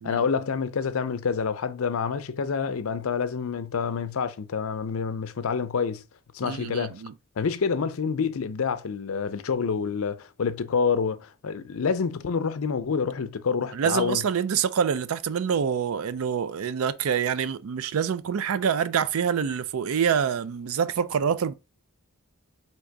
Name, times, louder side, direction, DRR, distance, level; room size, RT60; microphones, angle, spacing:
voice 1, 0.0-6.0 6.3-7.0 7.4-14.2, left 5 dB, 70° left, 0.5 m, -27 dB
voice 2, 6.4-7.1 13.7-21.5, right 7 dB, 70° right, 0.4 m, -26 dB
3.8 x 2.9 x 4.5 m
head